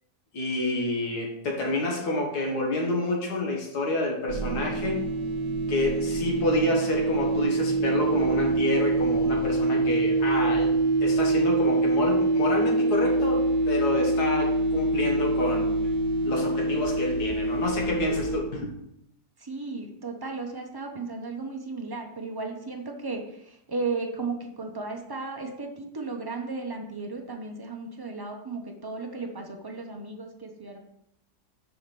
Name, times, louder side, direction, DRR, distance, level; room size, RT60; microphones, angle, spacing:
voice 1, 0.3-5.1 5.7-10.8 11.0-15.8 16.2-18.7, left 2 dB, 80° left, 0 dB, 2.0 m, -28 dB
sound 1, 4.3-18.4, right 2 dB, 85° right, 1.3 m, -25 dB
voice 2, 19.4-30.8, right 3 dB, 20° right, 2 dB, 0.7 m, -35 dB
5.6 x 5.0 x 5.9 m, 0.79 s
omnidirectional pair, 1.7 m